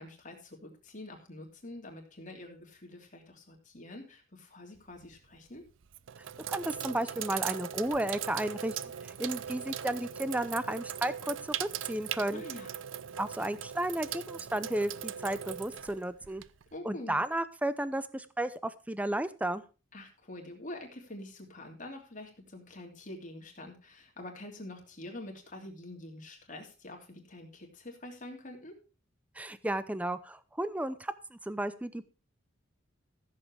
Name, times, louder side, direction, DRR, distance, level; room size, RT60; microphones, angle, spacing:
voice 1, 0.0-5.6 12.3-12.7 16.7-17.2 19.9-28.8, left 1 dB, 40° left, 2 dB, 3.1 m, -46 dB
Sink (filling or washing), 4.8-5.2 5.8-16.7, right 10 dB, 70° right, 0.5 m, -39 dB
voice 2, 6.5-8.8 9.0-12.4 13.2-16.4 16.8-19.6 29.4-32.0, right 1 dB, 5° right, 14 dB, 0.6 m, -33 dB
14.5 x 7.7 x 4.7 m, 0.34 s
head